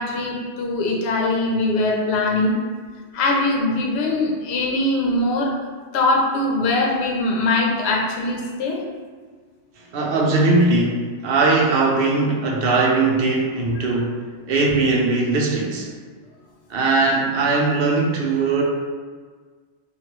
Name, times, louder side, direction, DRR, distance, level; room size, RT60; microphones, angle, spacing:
voice 1, 0.0-2.6 3.1-5.5 5.9-8.8 13.8-13.9, left 2 dB, 65° left, -1 dB, 0.8 m, -21 dB
voice 2, 9.9-14.2 14.5-15.9 16.7-18.6, right 3 dB, 60° right, -1 dB, 0.7 m, -19 dB
3.0 x 2.5 x 2.9 m, 1.5 s
omnidirectional pair, 1.3 m